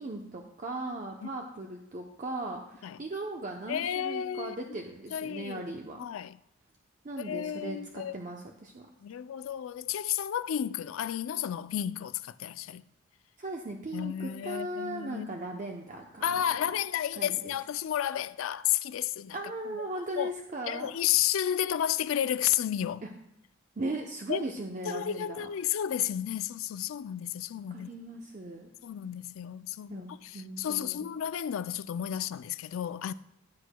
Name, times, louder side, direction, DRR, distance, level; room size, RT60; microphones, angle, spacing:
voice 1, 0.0-6.0 7.0-8.9 13.4-16.4 17.1-17.5 19.3-20.9 23.0-23.1 23.8-25.5 27.7-28.7 29.9-31.1, right 2 dB, 40° right, 0.7 m, -38 dB
voice 2, 3.7-4.8 5.1-5.6 6.0-6.4 7.3-8.2 9.0-12.8 13.9-15.3 16.2-19.4 19.7-19.8 20.2-20.3 20.7-23.0 24.3-24.5 24.9-27.9 28.8-33.1, left 10 dB, 80° left, 0.3 m, -32 dB
14.5 x 8.2 x 2.2 m
head